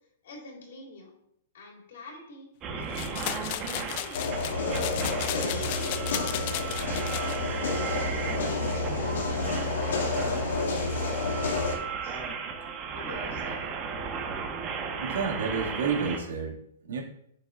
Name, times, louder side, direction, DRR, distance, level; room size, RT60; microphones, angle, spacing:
voice 1, 0.2-1.1 1.5-4.3 5.3-8.8 9.3-12.2 12.9-13.6, left 2 dB, 65° left, 0 dB, 3.6 m, -45 dB
sound 1, 2.6-16.2, right 5 dB, 25° right, 1.2 m, -36 dB
sound 2, 2.9-7.4, left 13 dB, 40° left, 0.4 m, -35 dB
sound 3, 4.1-11.7, left 3 dB, 90° left, 2.4 m, -29 dB
voice 2, 15.0-17.0, right 5 dB, 85° right, -1 dB, 2.2 m, -30 dB
10.5 x 7.7 x 2.5 m, 0.73 s
hypercardioid pair, 165°, 0 cm